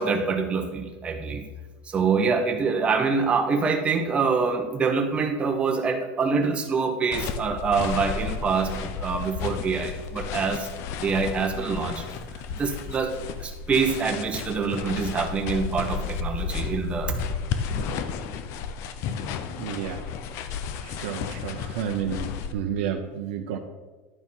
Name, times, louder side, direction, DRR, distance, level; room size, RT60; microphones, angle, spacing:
voice 1, 0.0-1.4 1.9-10.7 11.0-12.2 12.5-13.1 13.4-17.2, right 5 dB, 20° right, 3 dB, 1.1 m, -25 dB
sound 1, 7.1-22.5, left 6 dB, 50° left, 0.7 m, -33 dB
voice 2, 19.6-20.0 20.8-23.6, right 8 dB, 85° right, 3 dB, 0.8 m, -31 dB
11.0 x 4.6 x 5.5 m, 1.2 s
cardioid pair, 155°, 6 cm